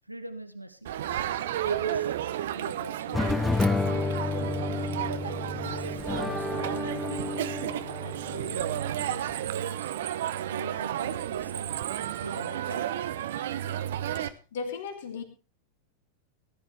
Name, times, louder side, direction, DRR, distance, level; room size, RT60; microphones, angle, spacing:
voice 1, 0.0-0.9 1.6-2.2 2.5-4.2 4.8-7.4 8.0-10.0 10.5-11.7 12.2-13.2, right 1 dB, 90° right, 10 dB, 1.1 m, -44 dB
Crowd, 0.8-14.3, right 11 dB, 60° right, 0.9 m, -32 dB
sound 1, 3.1-9.3, left 3 dB, 10° left, 0.6 m, -31 dB
voice 2, 14.3-15.2, left 5 dB, 60° left, 6 dB, 2.7 m, -36 dB
18.5 x 12.5 x 3.3 m, 0.32 s
figure-of-eight pair, 90°, 0 cm